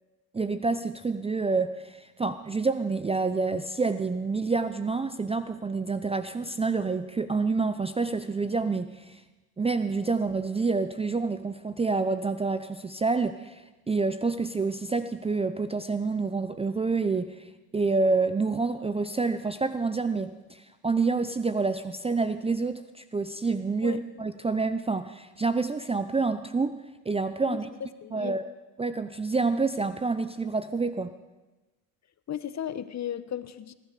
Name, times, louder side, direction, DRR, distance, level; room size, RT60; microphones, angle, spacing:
voice 1, 0.3-9.2 9.6-13.6 13.9-17.5 17.7-26.8 27.1-27.7 28.1-28.4 28.8-31.1, right 4 dB, 10° right, 11 dB, 0.6 m, -28 dB
voice 2, 27.5-28.4 32.3-33.7, left 9 dB, 35° left, 14 dB, 1.1 m, -35 dB
19.0 x 11.0 x 6.7 m, 1.1 s
hypercardioid pair, 75°, 49 cm